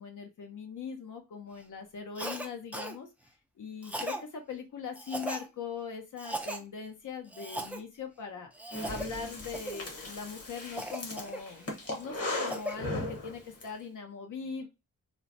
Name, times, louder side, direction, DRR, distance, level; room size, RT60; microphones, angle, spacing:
voice 1, 0.0-3.1 3.6-8.5 8.8-14.7, left 6 dB, 65° left, 4 dB, 0.7 m, -41 dB
Cough, 2.2-2.5 2.7-3.0 3.8-4.2 5.0-5.5 6.2-6.6 7.3-7.8 8.5-9.1 9.5-9.8 10.8-11.7 12.2-12.8, right 1 dB, 5° right, 0.4 m, -38 dB
Breathing, 8.7-13.7, left 1 dB, 45° left, 1.1 m, -37 dB
3.1 x 2.0 x 2.5 m, 0.24 s
wide cardioid pair, 110°, 34 cm